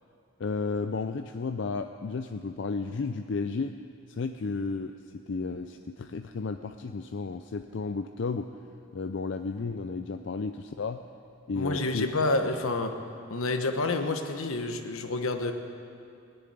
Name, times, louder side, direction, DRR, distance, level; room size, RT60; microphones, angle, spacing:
voice 1, 0.4-3.8 4.1-8.5 8.9-11.0 11.5-12.1, left 4 dB, 55° left, 7 dB, 0.4 m, -33 dB
voice 2, 11.6-12.9 13.3-15.5, left 2 dB, 80° left, 6 dB, 1.2 m, -28 dB
20.5 x 7.0 x 9.5 m, 2.6 s
head